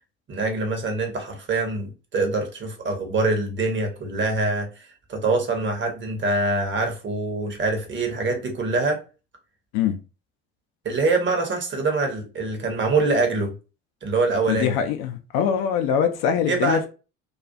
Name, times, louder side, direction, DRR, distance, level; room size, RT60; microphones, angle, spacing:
voice 1, 0.3-9.0 10.8-13.5 14.0-14.8 16.5-16.9, right 3 dB, 30° right, 0.8 m, -24 dB
voice 2, 14.5-16.9, left 8 dB, 55° left, 0.5 m, -23 dB
2.4 x 2.3 x 2.5 m
figure-of-eight pair, 60°, 40 cm